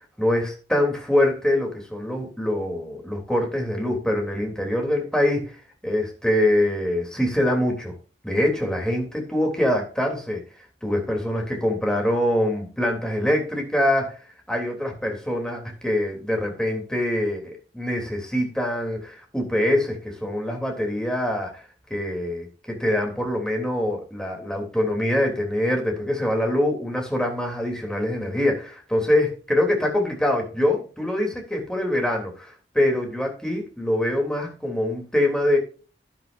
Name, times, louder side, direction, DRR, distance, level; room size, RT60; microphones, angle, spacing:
voice 1, 0.2-5.6 5.8-7.9 8.2-10.4 10.8-14.2 14.5-21.6 21.9-35.6, left 1 dB, 5° left, 1 dB, 3.3 m, -24 dB
11.5 x 11.0 x 2.7 m, 0.36 s
head